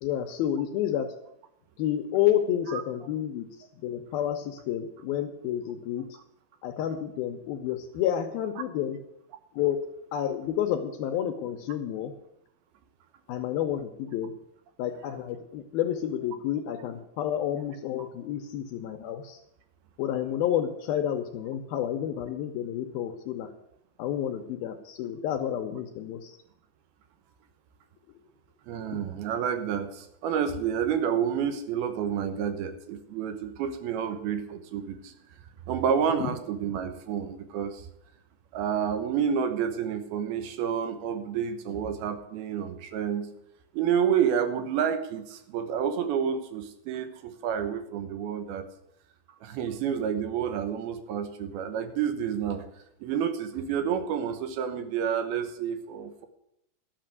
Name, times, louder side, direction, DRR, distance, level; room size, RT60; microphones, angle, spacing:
voice 1, 0.0-1.1 1.8-3.5 3.8-6.1 6.6-9.0 9.6-9.8 10.1-12.1 13.3-14.3 14.8-19.4 20.0-23.5 24.0-26.3 28.9-29.1, left 10 dB, 75° left, 7 dB, 2.4 m, -30 dB
voice 2, 28.7-35.1 35.7-37.9 38.5-43.3 43.7-48.7 49.4-52.6 53.0-56.3, right 8 dB, 70° right, 9 dB, 2.6 m, -29 dB
12.0 x 6.6 x 9.1 m, 0.78 s
omnidirectional pair, 4.9 m